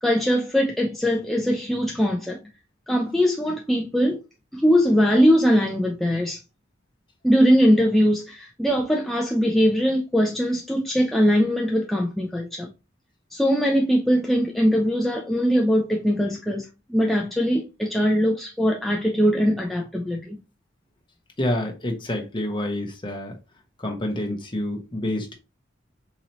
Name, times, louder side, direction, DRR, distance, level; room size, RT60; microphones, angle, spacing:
voice 1, 0.0-2.4 2.9-4.2 4.5-6.4 7.2-12.7 13.3-20.4, equal, ahead, 0.4 m, -21 dB
voice 2, 21.4-23.3 23.8-25.3, left 1 dB, 25° left, 0.9 m, -28 dB
4.0 x 2.9 x 2.8 m
head